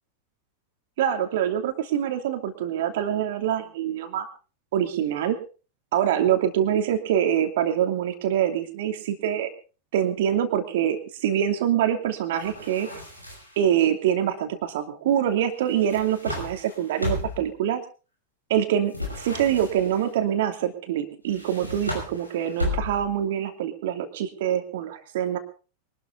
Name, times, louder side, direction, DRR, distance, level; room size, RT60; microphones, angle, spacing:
voice 1, 1.0-4.3 4.7-5.4 5.9-9.5 9.9-12.9 13.6-17.8 18.5-25.4, right 10 dB, 55° right, 7 dB, 2.8 m, -25 dB
sound 1, 12.4-13.7 15.6-17.5 18.9-20.1 21.3-23.2, left 2 dB, 90° left, 5.8 m, -33 dB
23.5 x 13.0 x 3.6 m, 0.35 s
figure-of-eight pair, 90°, 0 cm